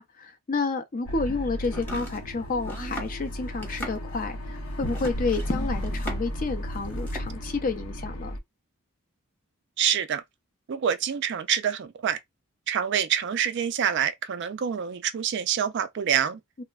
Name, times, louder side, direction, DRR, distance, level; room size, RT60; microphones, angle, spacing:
voice 1, 0.0-8.4 16.6-16.7, left 3 dB, 40° left, 0.5 m, -30 dB
sound 1, 1.1-8.4, equal, 85° left, 0.7 m, -34 dB
Domestic sounds home sounds, 1.6-6.4 6.7-7.3, right 1 dB, 10° left, 0.9 m, -40 dB
voice 2, 9.8-10.2 10.7-12.2 12.7-16.4, right 8 dB, 50° right, 0.3 m, -26 dB
3.3 x 2.0 x 2.3 m
head